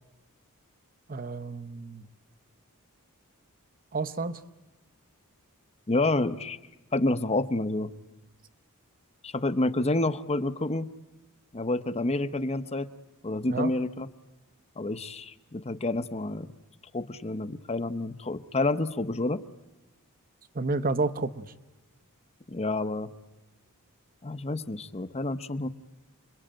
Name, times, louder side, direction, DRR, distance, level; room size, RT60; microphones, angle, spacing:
voice 1, 1.1-2.1 3.9-4.4 13.5-13.7 20.5-21.5, right 3 dB, 40° right, 12 dB, 1.0 m, -30 dB
voice 2, 5.9-6.6 6.9-7.9 9.2-10.9 11.5-12.9 13.2-14.1 14.8-16.5 16.9-19.4 22.5-23.1 24.2-25.7, left 2 dB, 30° left, 13 dB, 0.9 m, -29 dB
28.5 x 22.5 x 9.0 m, 1.1 s
head